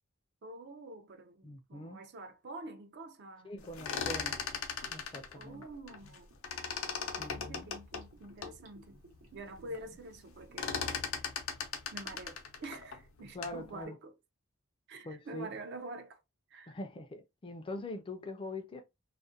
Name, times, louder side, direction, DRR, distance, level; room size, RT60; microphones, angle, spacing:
voice 1, 0.4-3.5 5.4-6.3 7.1-9.0 9.3-10.8 11.9-14.1 14.9-16.2 16.5-16.7, right 2 dB, 55° right, 0.4 m, -47 dB
voice 2, 1.4-2.1 3.4-4.4 4.9-5.6 7.2-7.7 13.3-14.0 15.0-15.5 16.7-18.8, left 1 dB, 25° left, 0.4 m, -43 dB
sound 1, 3.6-6.2 6.4-8.6 9.1-9.2 9.4-9.8 10.1-13.6, left 6 dB, 80° left, 0.5 m, -38 dB
Gurgling / Bathtub (filling or washing), 6.0-11.2 11.5-11.6, right 2 dB, 90° right, 0.9 m, -60 dB
2.4 x 2.1 x 2.6 m
head